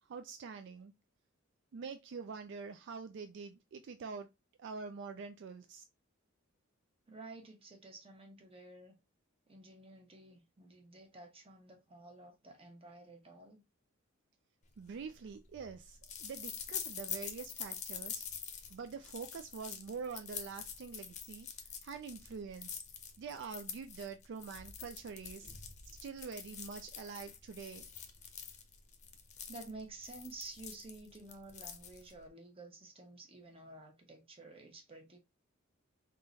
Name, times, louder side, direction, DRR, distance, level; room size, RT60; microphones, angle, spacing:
voice 1, 0.0-0.9 1.7-4.3 4.6-5.8 14.8-18.3 18.7-22.8 23.2-25.5 26.0-27.9, right 5 dB, 60° right, 0.4 m, -45 dB
voice 2, 7.1-9.0 9.5-13.6 29.5-35.2, right 2 dB, 30° right, 1.1 m, -51 dB
sound 1, 14.8-32.3, left 7 dB, 35° left, 0.7 m, -46 dB
3.7 x 2.5 x 4.0 m
head